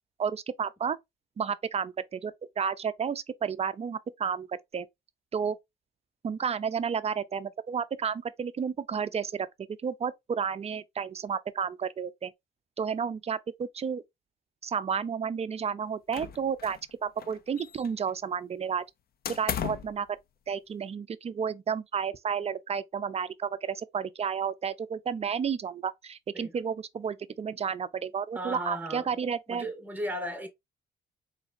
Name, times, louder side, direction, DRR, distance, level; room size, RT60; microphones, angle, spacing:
voice 1, 0.2-1.0 1.4-4.9 5.3-5.6 6.2-9.5 9.8-12.3 12.8-14.0 14.6-18.8 19.3-20.2 20.5-29.7, right 7 dB, 30° right, 0.4 m, -32 dB
sound 1, 16.1-16.9 17.2-18.1 19.2-20.0, left 9 dB, 50° left, 0.5 m, -36 dB
voice 2, 28.3-30.5, equal, 10° right, 1.3 m, -36 dB
3.9 x 3.2 x 2.5 m
cardioid pair, 90°, 20 cm